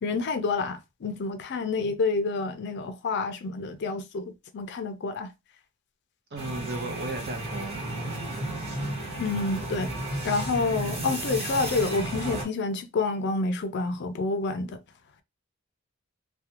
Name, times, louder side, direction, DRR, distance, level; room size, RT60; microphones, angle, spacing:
voice 1, 0.0-5.3 9.2-9.9 10.2-14.8, left 3 dB, 55° left, 0.4 m, -28 dB
voice 2, 6.3-7.8, right 2 dB, 55° right, 0.8 m, -34 dB
sound 1, 6.4-12.4, right 1 dB, 35° right, 1.2 m, -33 dB
2.4 x 2.2 x 2.8 m
head